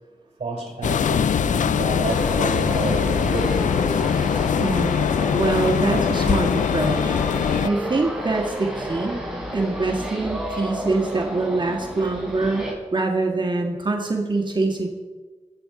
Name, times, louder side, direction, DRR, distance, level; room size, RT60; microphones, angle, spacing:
voice 1, 0.4-4.3, right 2 dB, 55° right, 0 dB, 5.8 m, -29 dB
sound 1, 0.8-7.7, left 8 dB, 85° left, 0.4 m, -22 dB
sound 2, 2.0-12.7, right 1 dB, 5° right, 4.6 m, -31 dB
voice 2, 4.6-4.9 5.3-7.2 7.6-9.2 9.5-14.9, right 3 dB, 40° right, 2 dB, 1.7 m, -24 dB
22.5 x 8.9 x 4.9 m, 1.3 s
wide cardioid pair, 75°, 13 cm